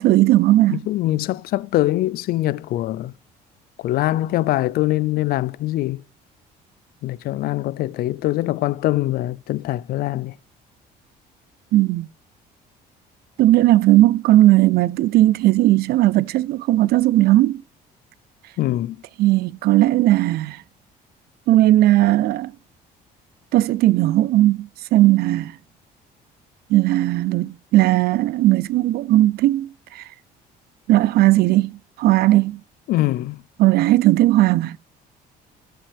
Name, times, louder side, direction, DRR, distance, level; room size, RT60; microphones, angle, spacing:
voice 1, 0.0-0.8 11.7-12.1 13.4-17.6 19.2-20.6 21.5-22.5 23.5-25.6 26.7-30.1 30.9-32.6 33.6-34.8, right 15 dB, 70° right, 0.4 m, -17 dB
voice 2, 0.7-3.1 3.8-6.0 7.0-10.3 18.6-19.0 32.9-33.4, left 16 dB, 65° left, 0.4 m, -23 dB
13.0 x 5.6 x 3.3 m
cardioid pair, 110°, 17 cm